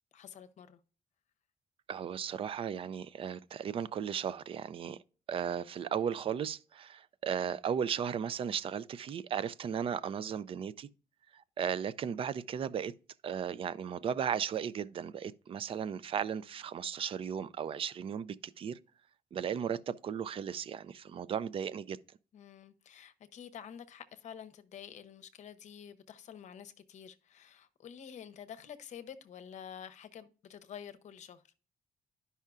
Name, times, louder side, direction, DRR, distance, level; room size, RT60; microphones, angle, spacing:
voice 1, 0.1-0.8 22.3-31.4, left 8 dB, 55° left, 0.7 m, -49 dB
voice 2, 1.9-5.0 5.3-10.9 11.3-12.9 13.2-18.8 19.3-22.0, right 8 dB, 40° right, 0.4 m, -36 dB
12.0 x 5.5 x 2.4 m
cardioid pair, 170°, 14 cm